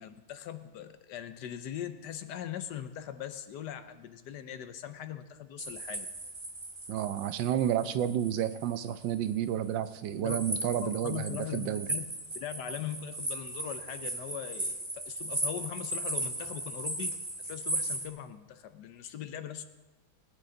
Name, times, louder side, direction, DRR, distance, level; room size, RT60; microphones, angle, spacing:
voice 1, 0.0-6.1 10.1-10.4 10.7-12.0 12.3-19.6, left 10 dB, 70° left, 10 dB, 1.2 m, -40 dB
sound 1, 5.6-9.3 10.2-18.1, right 1 dB, 15° right, 1.2 m, -37 dB
voice 2, 6.9-11.9, right 10 dB, 80° right, 12 dB, 1.3 m, -31 dB
20.0 x 9.4 x 3.8 m, 1.1 s
omnidirectional pair, 2.0 m